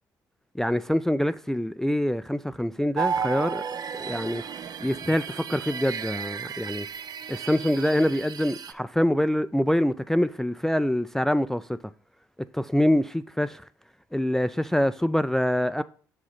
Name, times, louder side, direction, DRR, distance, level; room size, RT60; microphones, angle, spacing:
voice 1, 0.6-3.6 4.0-4.4 4.8-6.9 7.3-11.8 12.5-13.6 14.1-15.8, left 1 dB, 5° left, 0.3 m, -25 dB
sound 1, 3.0-8.7, right 7 dB, 50° right, 0.5 m, -33 dB
6.6 x 4.9 x 4.2 m
hypercardioid pair, 50°, 9 cm